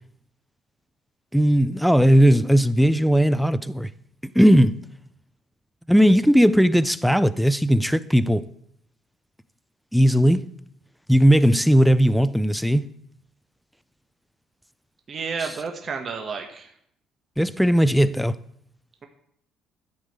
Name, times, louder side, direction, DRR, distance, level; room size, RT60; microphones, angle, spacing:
voice 1, 1.3-3.9 4.3-4.8 5.9-8.5 9.9-10.5 11.1-12.9 17.4-18.4, equal, ahead, 0.5 m, -17 dB
voice 2, 15.1-16.7, right 5 dB, 35° right, 1.2 m, -31 dB
12.0 x 5.4 x 8.0 m
cardioid pair, 135°, 0 cm